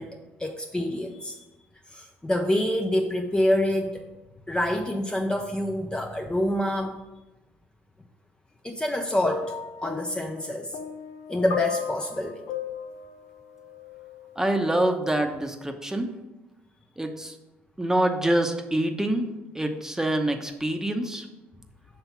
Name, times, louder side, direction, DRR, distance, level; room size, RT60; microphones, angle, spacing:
voice 1, 0.0-1.4 1.9-4.1 4.5-7.0 8.6-9.5 9.8-10.8 11.3-12.4, left 1 dB, 15° left, 3 dB, 0.5 m, -27 dB
sound 1, 9.2-14.4 15.3-15.4, left 7 dB, 70° left, 0.5 m, -36 dB
voice 2, 14.4-16.1 17.0-17.4 17.8-19.3 19.5-21.3, right 1 dB, 10° right, 5 dB, 0.8 m, -25 dB
5.7 x 3.4 x 5.6 m, 1.0 s
supercardioid pair, 70°, 6 cm